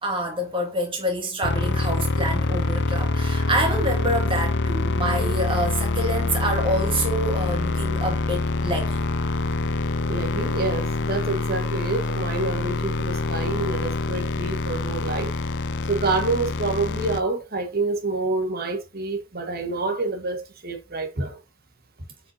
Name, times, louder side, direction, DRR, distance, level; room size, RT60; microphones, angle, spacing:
voice 1, 0.0-9.0, right 1 dB, 25° right, 2.4 m, -27 dB
sound 1, 1.4-17.2, left 3 dB, 55° left, 0.6 m, -25 dB
voice 2, 10.1-15.3 15.9-21.4, right 3 dB, 45° right, 1.6 m, -27 dB
7.3 x 5.3 x 2.8 m
head